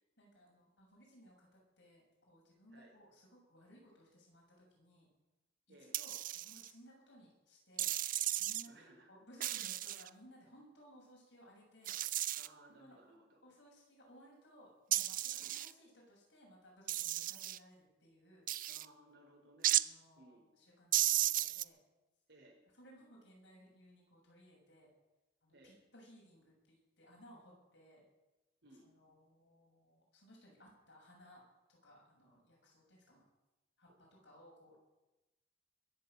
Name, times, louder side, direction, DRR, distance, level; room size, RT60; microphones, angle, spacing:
voice 1, 0.2-5.1 5.8-7.9 8.4-11.9 12.8-12.9 13.4-18.5 19.8-21.8 22.7-24.9 25.4-28.0 28.8-31.4 31.7-33.2 33.8-34.8, equal, 75° left, -2 dB, 7.4 m, -61 dB
sound 1, 5.9-6.7 7.8-8.7 9.4-10.1 11.8-12.5 14.9-15.7 16.9-17.6 18.5-18.8 19.6-19.9 20.9-21.6, right 14 dB, 50° right, 0.5 m, -34 dB
voice 2, 8.7-9.1 12.3-13.4 15.4-15.6 18.7-19.7 20.2-20.4 22.3-22.6 25.5-25.8 28.6-28.9, right 1 dB, 70° right, -1 dB, 5.0 m, -61 dB
22.0 x 7.9 x 7.8 m, 1.0 s
head